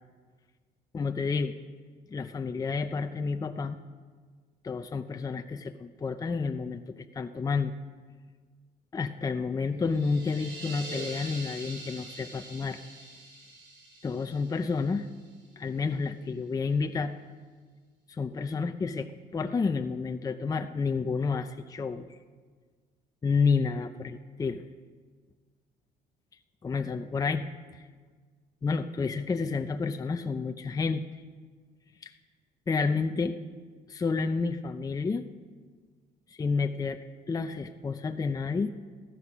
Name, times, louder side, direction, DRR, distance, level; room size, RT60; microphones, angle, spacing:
voice 1, 0.9-1.5 2.1-3.8 4.6-7.7 8.9-12.8 14.0-15.1 15.6-17.1 18.1-22.1 23.2-24.6 26.6-27.4 27.7-27.8 28.6-31.0 32.0-32.1 32.7-33.4 33.9-35.2 36.4-37.0 37.3-38.7, left 4 dB, 20° left, 7 dB, 0.6 m, -30 dB
sound 1, 9.8-15.5, right 2 dB, 80° right, 5.2 m, -44 dB
14.5 x 14.0 x 6.0 m, 1.5 s
cardioid pair, 110°, 17 cm